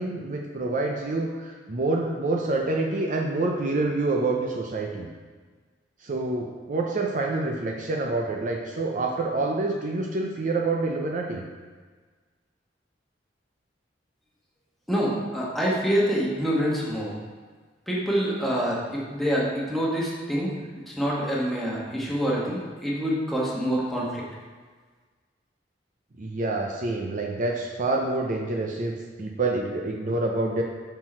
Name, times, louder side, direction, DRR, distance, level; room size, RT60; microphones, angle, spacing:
voice 1, 0.0-5.1 6.0-11.4 26.2-30.6, right 2 dB, 45° right, 0 dB, 0.5 m, -27 dB
voice 2, 14.9-17.1 17.9-20.5 20.9-24.2, equal, ahead, -6 dB, 1.2 m, -26 dB
5.8 x 4.5 x 4.3 m, 1.4 s
head